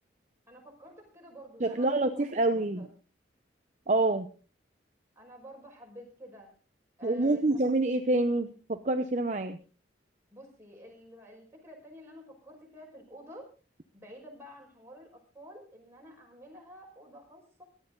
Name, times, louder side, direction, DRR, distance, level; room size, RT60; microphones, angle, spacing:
voice 1, 0.5-2.9 5.2-6.5 7.0-7.6 10.3-13.5 13.9-17.6, equal, 15° right, -1 dB, 5.6 m, -50 dB
voice 2, 1.6-2.9 3.9-4.3 7.0-9.6, right 2 dB, 40° right, 7 dB, 0.8 m, -27 dB
17.5 x 12.0 x 3.9 m, 0.36 s
head